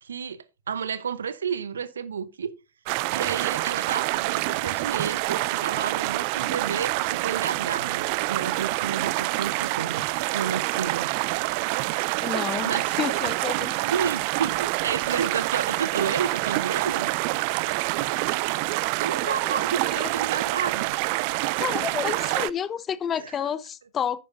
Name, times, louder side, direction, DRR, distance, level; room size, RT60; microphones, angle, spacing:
voice 1, 0.0-2.5 3.1-10.0 10.3-11.1 12.6-13.1 13.9-17.1 19.0-21.0 23.1-23.3, right 7 dB, 75° right, 0.8 m, -31 dB
sound 1, 2.9-22.5, right 21 dB, 50° right, 0.4 m, -27 dB
voice 2, 12.2-13.7 18.7-18.9 19.2-19.6 19.8-20.1 21.6-24.2, left 8 dB, 25° left, 0.7 m, -30 dB
10.0 x 9.4 x 2.6 m
figure-of-eight pair, 95°, 0 cm